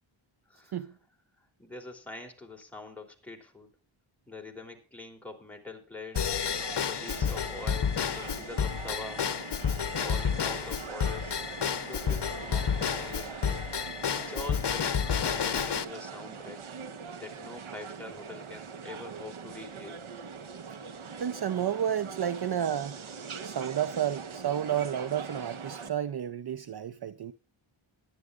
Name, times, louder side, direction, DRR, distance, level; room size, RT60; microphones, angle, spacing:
voice 1, 0.5-0.9 1.4-3.7 4.3-6.4 6.8-9.3 10.0-11.4 11.8-13.6 14.1-16.6 17.2-20.0, left 2 dB, 5° left, 3.1 m, -44 dB
sound 1, 6.1-25.9, right 6 dB, 75° right, 1.2 m, -42 dB
Drum kit / Drum / Bell, 6.2-15.8, left 7 dB, 55° left, 0.9 m, -30 dB
voice 2, 21.2-23.0 23.4-27.3, right 9 dB, 50° right, 0.6 m, -31 dB
20.5 x 10.5 x 2.4 m
wide cardioid pair, 75°, 49 cm